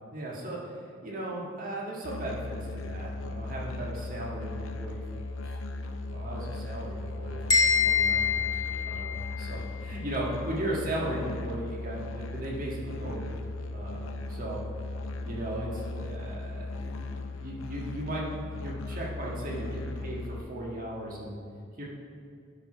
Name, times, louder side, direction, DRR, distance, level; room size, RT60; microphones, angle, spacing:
voice 1, 0.1-0.6 1.0-5.6 6.1-13.4 13.7-14.6 15.2-21.3 21.8-21.9, right 1 dB, 45° right, -4 dB, 1.6 m, -37 dB
Musical instrument, 2.0-20.4, left 2 dB, 80° left, 0.5 m, -37 dB
sound 1, 7.5-9.5, left 6 dB, 20° left, 1.5 m, -25 dB
9.4 x 4.9 x 4.4 m, 2.4 s
head